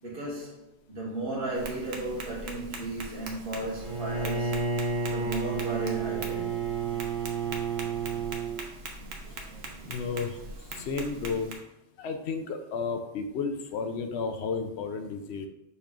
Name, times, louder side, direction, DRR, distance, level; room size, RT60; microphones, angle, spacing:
voice 1, 0.0-4.6 5.1-6.6, right 2 dB, 55° right, 1.5 m, -35 dB
Tap, 1.5-11.5, right 2 dB, 70° right, 1.0 m, -42 dB
Bowed string instrument, 3.8-8.6, right 5 dB, 30° right, 1.4 m, -31 dB
voice 2, 9.9-10.4 10.7-11.5 12.0-15.5, left 5 dB, 75° left, 0.8 m, -32 dB
5.2 x 4.2 x 2.4 m
omnidirectional pair, 1.2 m